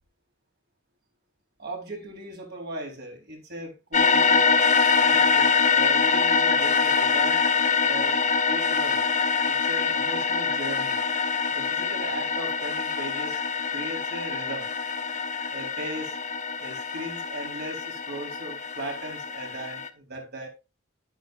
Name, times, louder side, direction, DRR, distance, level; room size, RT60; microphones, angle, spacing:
voice 1, 1.6-4.6 5.0-7.4 7.8-9.0 9.4-13.4 13.7-14.7 15.5-16.2 16.6-20.5, right 1 dB, 50° right, 4.2 m, -38 dB
sound 1, 3.9-19.9, left 5 dB, 35° left, 1.0 m, -24 dB
11.0 x 10.0 x 2.5 m
head